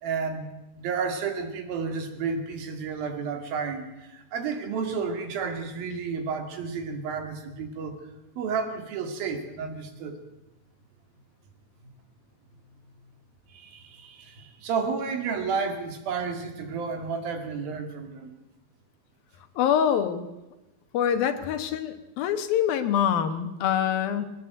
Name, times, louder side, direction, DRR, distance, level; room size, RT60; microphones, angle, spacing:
voice 1, 0.0-8.0 8.4-10.2 13.5-18.3, right 5 dB, 80° right, 6 dB, 4.1 m, -31 dB
voice 2, 19.6-20.3 20.9-24.3, left 9 dB, 80° left, 9 dB, 3.2 m, -25 dB
21.5 x 19.0 x 7.9 m, 0.98 s
omnidirectional pair, 4.2 m